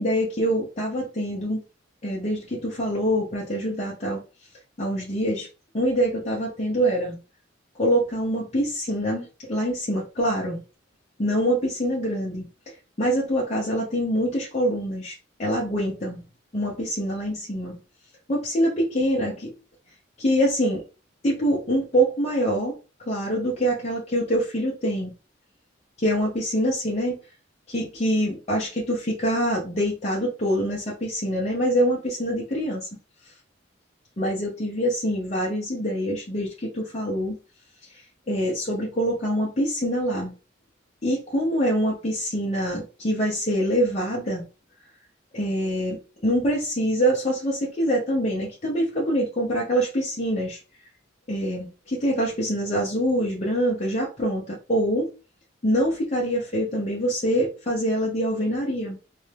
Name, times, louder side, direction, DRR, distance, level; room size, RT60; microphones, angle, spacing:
voice 1, 0.0-1.6 2.0-4.2 4.8-5.5 5.7-7.2 7.7-10.6 11.2-12.5 13.0-16.2 16.5-17.7 18.3-19.5 20.2-20.8 21.2-22.8 23.1-25.1 26.0-27.2 27.7-32.9 34.2-37.4 37.8-40.3 41.0-44.5 45.3-50.6 51.3-55.1 55.6-59.0, equal, 35° left, -4 dB, 0.7 m, -25 dB
2.6 x 2.2 x 3.2 m, 0.33 s
head